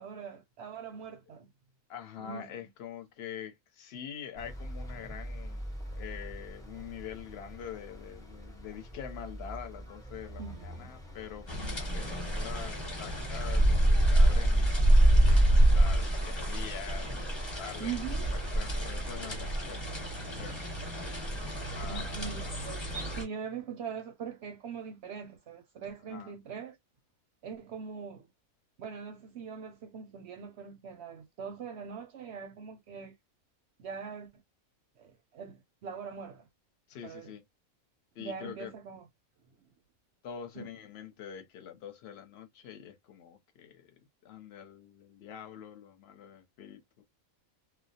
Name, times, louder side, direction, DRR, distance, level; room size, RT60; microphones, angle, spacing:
voice 1, 0.0-1.5 2.2-2.5 10.4-11.0 17.8-18.3 21.8-26.8 27.4-28.3 28.8-33.1 33.8-34.3 35.0-36.5 37.0-37.3 38.2-39.1 40.6-40.7, right 6 dB, 65° right, 0.7 m, -42 dB
voice 2, 1.9-5.6 5.9-14.7 15.7-17.3 17.6-18.0 18.3-20.7 21.7-22.2 26.1-26.3 36.9-37.4 38.2-38.7 40.2-47.0, left 8 dB, 60° left, 0.8 m, -45 dB
sound 1, 4.4-14.4, equal, 5° left, 0.4 m, -45 dB
sound 2, 11.5-23.2, right 1 dB, 25° left, 0.9 m, -26 dB
2.3 x 2.0 x 2.7 m
omnidirectional pair, 1.5 m